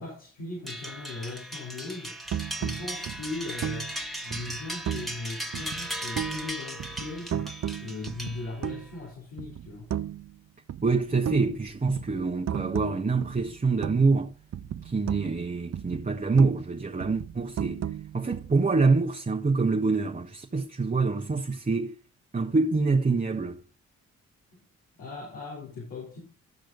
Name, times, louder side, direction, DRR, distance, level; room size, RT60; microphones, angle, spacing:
voice 1, 0.0-2.2 2.5-3.9 4.2-7.5 7.8-9.9 24.5-24.6 25.0-26.2, left 3 dB, 85° left, 3.7 m, -38 dB
sound 1, 0.7-8.8, equal, ahead, 1.7 m, -37 dB
sound 2, 2.3-5.2 5.5-6.5 6.8-9.0 9.4-10.4 10.7-14.3 14.5-16.7 17.0-18.8, right 10 dB, 45° right, 0.7 m, -35 dB
voice 2, 10.8-14.3 14.8-17.8 18.1-21.9 22.3-23.6, right 4 dB, 20° right, 1.2 m, -25 dB
12.0 x 6.3 x 3.8 m
hypercardioid pair, 40°, 37 cm